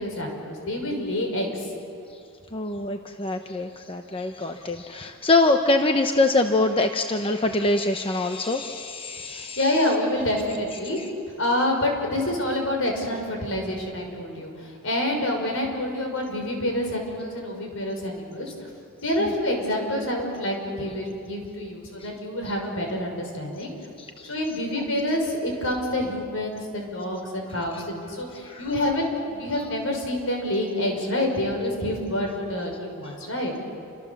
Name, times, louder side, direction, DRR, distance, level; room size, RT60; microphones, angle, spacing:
voice 1, 0.0-1.7 9.3-11.0 11.4-18.7 19.0-23.7 24.3-33.5, left 1 dB, 70° left, 2 dB, 5.8 m, -27 dB
voice 2, 2.5-9.6 19.2-19.3 24.0-24.3 28.5-28.7, left 2 dB, 25° left, 5 dB, 0.9 m, -24 dB
29.0 x 26.5 x 7.2 m, 2.5 s
head